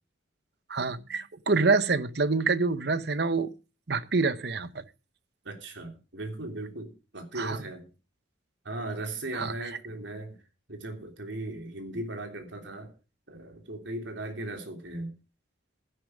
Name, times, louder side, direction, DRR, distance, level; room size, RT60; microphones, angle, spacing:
voice 1, 0.7-3.5 3.9-4.8 7.4-7.6 9.3-9.5, right 4 dB, 55° right, 0.8 m, -26 dB
voice 2, 5.4-7.9 8.6-10.4 10.7-12.9 13.3-15.1, right 2 dB, 70° right, 3.3 m, -37 dB
12.5 x 10.5 x 5.0 m
head